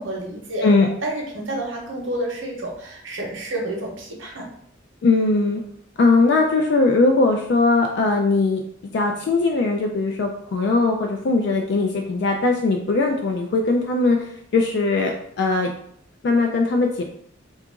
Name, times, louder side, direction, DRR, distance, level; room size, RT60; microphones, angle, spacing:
voice 1, 0.0-0.7 1.0-4.5, right 1 dB, 75° right, 0 dB, 0.8 m, -29 dB
voice 2, 5.0-5.6 6.0-8.6 8.9-15.7 16.2-17.0, left 3 dB, 55° left, 2 dB, 0.3 m, -20 dB
2.8 x 2.4 x 3.6 m, 0.67 s
head